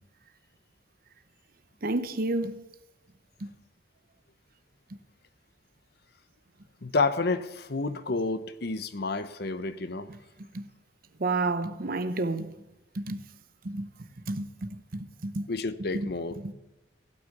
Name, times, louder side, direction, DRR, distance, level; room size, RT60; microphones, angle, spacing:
voice 1, 1.8-2.6 3.4-3.5 10.1-10.2 10.5-10.7 11.2-12.5 12.9-13.2 13.6-13.9 14.3-15.5 15.8-16.5, right 2 dB, 50° right, 0.8 m, -31 dB
voice 2, 6.8-10.1 15.5-16.5, left 3 dB, 55° left, 0.8 m, -30 dB
16.0 x 6.3 x 7.9 m
head